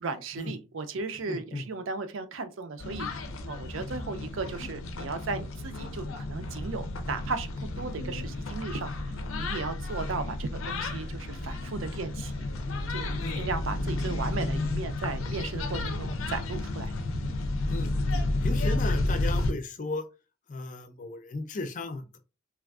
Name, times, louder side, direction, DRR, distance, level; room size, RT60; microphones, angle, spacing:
voice 1, 0.0-3.1 3.5-7.5 7.8-8.9 9.4-12.5 12.9-16.9, right 4 dB, 75° right, 0.5 m, -36 dB
voice 2, 1.3-1.6 13.2-13.4 17.7-17.9 18.4-20.0 20.5-22.2, left 2 dB, 40° left, 0.4 m, -35 dB
sound 1, 2.8-19.5, left 2 dB, 90° left, 0.5 m, -32 dB
3.4 x 2.4 x 2.3 m
head